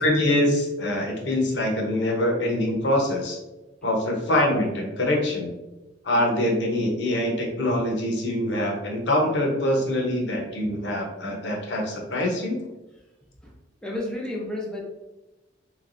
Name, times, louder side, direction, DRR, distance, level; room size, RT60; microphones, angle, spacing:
voice 1, 0.0-3.4 3.8-5.5 6.0-12.6, left 1 dB, 70° left, 0 dB, 0.9 m, -24 dB
voice 2, 13.8-14.8, left 1 dB, 5° left, -2 dB, 0.6 m, -31 dB
3.3 x 3.2 x 2.5 m, 1.0 s
head